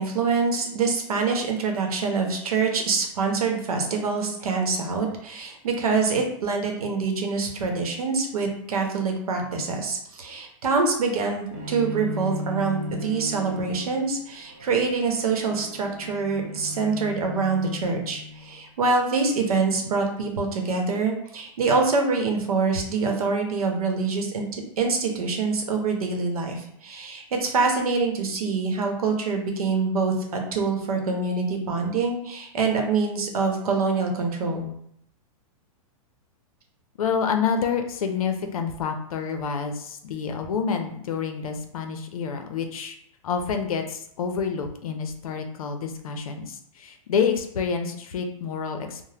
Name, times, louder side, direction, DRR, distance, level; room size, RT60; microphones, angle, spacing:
voice 1, 0.0-34.7, right 4 dB, 90° right, 3 dB, 0.8 m, -25 dB
Bowed string instrument, 11.5-18.6, left 1 dB, 25° right, 0.3 m, -37 dB
voice 2, 37.0-43.0 43.2-49.0, left 6 dB, 75° left, 6 dB, 0.5 m, -28 dB
2.8 x 2.1 x 3.3 m, 0.71 s
supercardioid pair, 180°, 18 cm